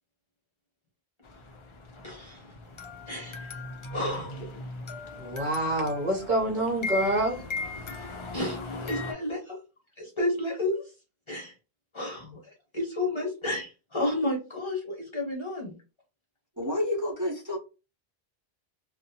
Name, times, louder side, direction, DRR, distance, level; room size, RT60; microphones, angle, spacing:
sound 1, 1.2-9.1, left 3 dB, 55° left, 0.3 m, -38 dB
voice 1, 2.0-2.4 3.1-3.6 3.9-4.6 8.3-9.6 10.0-10.9 11.3-11.5 11.9-15.7, left 1 dB, 30° left, 1.0 m, -32 dB
voice 2, 5.2-7.4, right 1 dB, 55° right, 0.8 m, -27 dB
voice 3, 16.6-17.6, left 1 dB, 20° right, 0.7 m, -29 dB
2.7 x 2.1 x 2.7 m
omnidirectional pair, 1.0 m